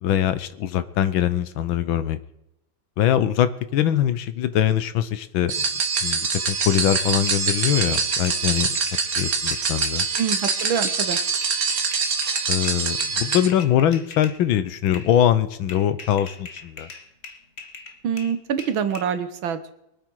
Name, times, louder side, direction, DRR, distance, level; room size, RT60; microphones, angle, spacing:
voice 1, 0.0-2.2 3.0-5.6 6.0-8.7 9.2-10.0 12.5-16.9, left 10 dB, 90° left, 13 dB, 1.7 m, -22 dB
sound 1, 5.5-13.5, right 5 dB, 50° right, 1.8 m, -24 dB
sound 2, 6.7-14.4 14.9-15.1 15.7-19.1, left 4 dB, 35° left, 1.5 m, -41 dB
voice 2, 10.2-11.2 18.0-19.7, right 7 dB, 85° right, 11 dB, 1.9 m, -25 dB
23.5 x 8.8 x 4.8 m, 0.83 s
omnidirectional pair, 2.1 m